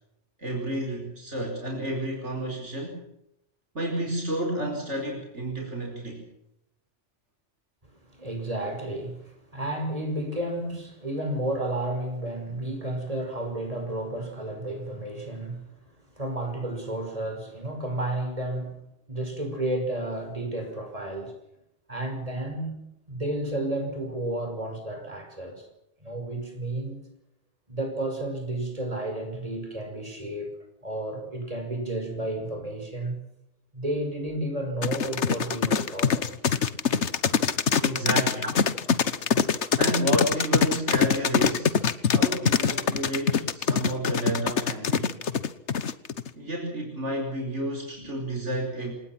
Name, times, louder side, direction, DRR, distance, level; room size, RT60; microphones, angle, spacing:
voice 1, 0.4-3.0 3.7-6.2 37.8-38.5 39.8-41.8 42.1-45.2 46.3-48.9, right 1 dB, 85° right, 5.1 m, -31 dB
voice 2, 7.9-15.8 16.1-18.8 19.1-21.3 21.9-25.7 26.0-27.0 27.7-30.6 30.8-33.2 33.7-36.3 48.0-48.1, right 1 dB, 30° right, 6.1 m, -32 dB
sound 1, 34.8-46.3, left 6 dB, 80° left, 1.5 m, -23 dB
27.5 x 19.5 x 6.0 m
omnidirectional pair, 1.2 m